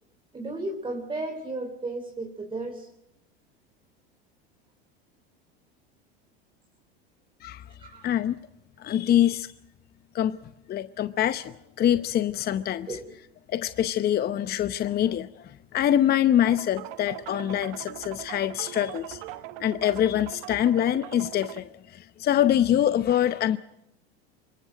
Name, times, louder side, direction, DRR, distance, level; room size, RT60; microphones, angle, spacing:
voice 1, 0.3-2.9 7.8-8.2 12.9-13.0, right 2 dB, 15° right, 3 dB, 3.6 m, -34 dB
voice 2, 8.0-8.4 8.8-9.5 10.1-10.4 10.7-13.0 13.5-19.2 19.6-23.6, left 11 dB, 30° left, 12 dB, 0.8 m, -25 dB
sound 1, 16.4-21.6, right 16 dB, 60° right, 1.1 m, -41 dB
26.5 x 24.0 x 5.1 m, 0.84 s
hypercardioid pair, 95°, 31 cm